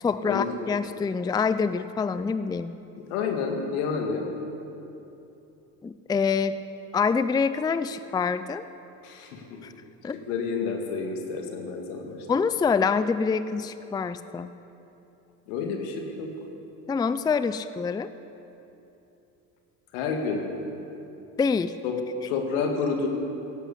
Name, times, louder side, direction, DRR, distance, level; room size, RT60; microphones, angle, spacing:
voice 1, 0.0-2.7 5.8-6.6 6.9-8.6 9.6-9.7 10.0-10.2 12.3-14.5 16.9-18.1 21.4-21.8, left 5 dB, 10° left, 13 dB, 0.4 m, -26 dB
voice 2, 3.1-4.3 9.0-9.6 10.1-12.2 15.5-16.3 19.9-20.4 21.8-22.0 22.2-23.1, left 5 dB, 85° left, 3 dB, 2.1 m, -29 dB
16.5 x 8.1 x 8.4 m, 2.9 s
supercardioid pair, 85°, 42 cm